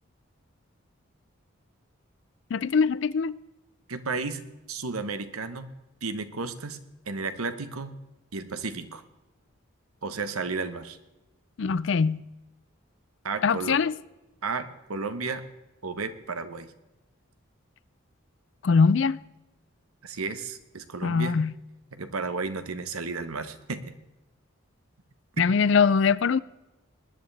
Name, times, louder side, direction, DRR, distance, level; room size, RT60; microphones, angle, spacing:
voice 1, 2.5-3.4 11.6-12.2 13.4-13.9 18.6-19.2 21.0-21.5 25.4-26.4, left 5 dB, 60° left, 0.4 m, -22 dB
voice 2, 3.9-4.4 4.7-5.7 6.0-6.8 7.1-7.9 8.3-9.0 10.0-11.0 13.2-13.8 14.4-15.4 15.8-16.7 20.0-21.3 21.9-23.9, right 4 dB, 90° right, 1.2 m, -33 dB
20.5 x 10.5 x 3.4 m
head